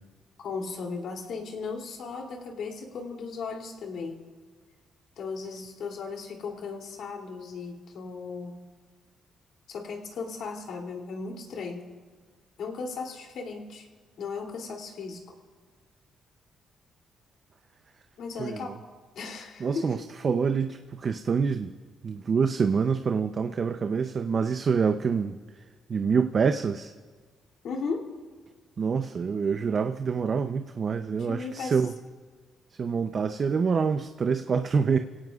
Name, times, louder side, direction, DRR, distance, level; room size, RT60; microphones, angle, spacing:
voice 1, 0.4-4.2 5.2-8.6 9.7-11.9 12.6-13.9 14.2-15.2 18.2-18.8 19.1-20.0 27.6-28.1 31.1-31.8, left 4 dB, 70° left, 1 dB, 2.9 m, -36 dB
voice 2, 18.4-18.7 19.6-20.0 20.2-21.7 22.0-25.4 25.9-26.9 28.8-31.9 32.8-35.0, right 5 dB, 45° right, 7 dB, 0.6 m, -26 dB
28.5 x 17.0 x 2.4 m, 1.5 s
cardioid pair, 90°, 0 cm